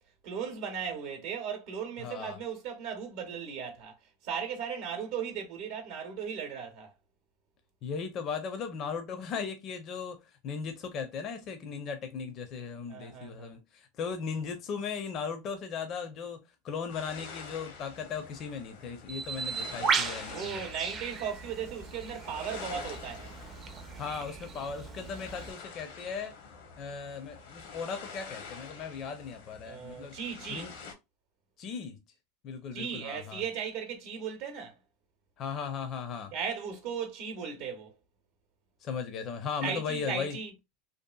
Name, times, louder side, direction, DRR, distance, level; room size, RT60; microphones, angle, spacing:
voice 1, 0.2-3.9 4.2-6.9 12.9-13.5 19.6-19.9 20.3-23.4 29.6-30.7 32.7-34.7 36.3-37.9 39.6-40.5, right 7 dB, 65° right, 0.7 m, -37 dB
voice 2, 2.0-2.4 7.8-20.6 24.0-26.3 26.8-30.1 30.5-30.8 31.6-32.0 32.4-33.4 35.4-36.3 38.8-40.4, left 6 dB, 40° left, 0.5 m, -37 dB
sound 1, 16.9-30.9, left 5 dB, 70° left, 0.7 m, -47 dB
Bird, 19.1-25.5, right 5 dB, 30° right, 0.4 m, -36 dB
2.7 x 2.4 x 2.2 m
supercardioid pair, 115°, 0 cm